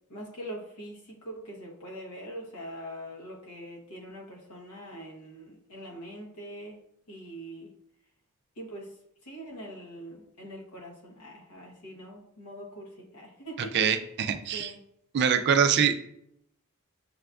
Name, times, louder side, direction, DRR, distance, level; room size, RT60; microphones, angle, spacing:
voice 1, 0.1-6.8 7.1-7.7 8.6-8.9 9.2-13.9 14.5-14.8, right 1 dB, 85° left, -1 dB, 1.0 m, -43 dB
voice 2, 13.6-14.7 15.1-15.9, right 7 dB, 50° right, 9 dB, 0.3 m, -24 dB
6.6 x 2.4 x 2.3 m, 0.74 s
head